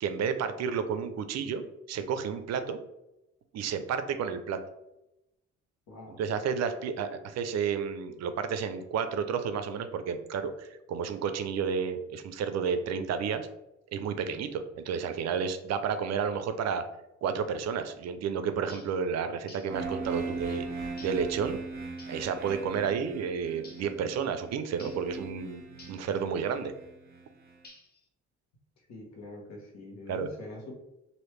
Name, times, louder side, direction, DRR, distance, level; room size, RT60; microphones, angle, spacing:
voice 1, 0.0-2.8 3.5-4.6 6.2-13.5 13.9-16.8 17.2-20.7 21.0-21.6 22.1-26.7 30.1-30.3, right 6 dB, 60° right, 9 dB, 0.4 m, -31 dB
voice 2, 5.9-6.2 28.9-30.7, left 2 dB, 65° left, -1 dB, 1.1 m, -44 dB
sound 1, 18.7-19.0 19.5-19.8 21.0-21.3 22.0-22.2 23.6-23.9 24.8-25.1 25.8-26.1 27.6-28.1, left 3 dB, 30° left, 0.7 m, -52 dB
sound 2, 19.7-27.5, right 3 dB, 30° right, 1.1 m, -40 dB
3.2 x 2.6 x 3.1 m, 0.90 s
cardioid pair, 90°, 30 cm